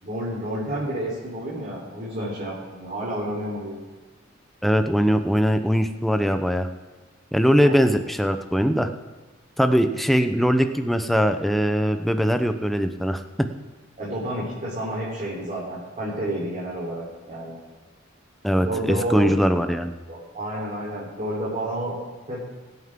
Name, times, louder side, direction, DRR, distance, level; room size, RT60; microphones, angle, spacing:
voice 1, 0.0-3.8 7.5-7.8 14.0-17.6 18.7-19.3 20.1-21.9 22.3-22.4, right 1 dB, 40° right, -8 dB, 3.7 m, -30 dB
voice 2, 4.6-6.7 7.3-8.9 9.6-13.2 18.4-19.9, equal, ahead, 7 dB, 0.7 m, -21 dB
22.0 x 9.5 x 3.7 m, 1.3 s
head